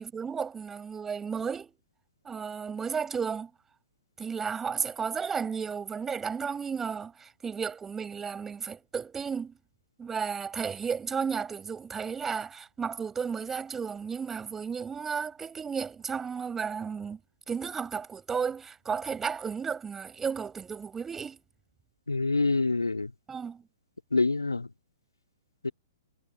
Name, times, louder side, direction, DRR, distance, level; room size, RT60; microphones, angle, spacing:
voice 1, 0.0-1.7 2.2-3.5 4.2-9.5 10.0-17.2 17.5-21.4 23.3-23.6, right 6 dB, 10° right, 4.9 m, -33 dB
voice 2, 22.1-23.1 24.1-24.7 25.6-25.7, left 3 dB, 80° left, 3.3 m, -26 dB
figure-of-eight pair, 115°, 2 cm